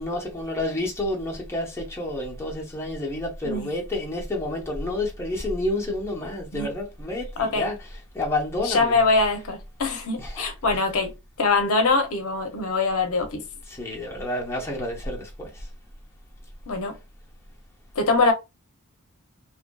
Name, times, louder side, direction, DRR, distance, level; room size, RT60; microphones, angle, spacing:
voice 1, 0.0-7.8 8.1-9.1 10.2-10.5 13.7-15.7, left 1 dB, 10° left, 0.8 m, -29 dB
voice 2, 8.6-13.4 16.7-17.0 18.0-18.3, left 3 dB, 70° left, 0.6 m, -23 dB
2.6 x 2.5 x 2.2 m
head